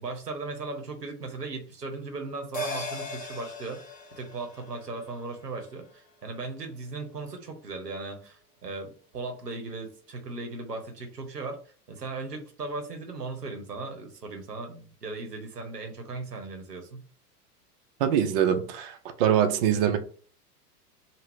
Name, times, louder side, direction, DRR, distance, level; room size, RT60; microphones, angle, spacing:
voice 1, 0.0-3.8 4.2-11.6 11.9-17.0, right 3 dB, 90° right, 0.8 m, -37 dB
sound 1, 2.5-7.3 7.6-7.7, left 1 dB, 15° left, 0.7 m, -40 dB
voice 2, 18.0-20.0, right 9 dB, 40° right, 0.4 m, -24 dB
2.6 x 2.0 x 3.3 m
figure-of-eight pair, 90°, 47 cm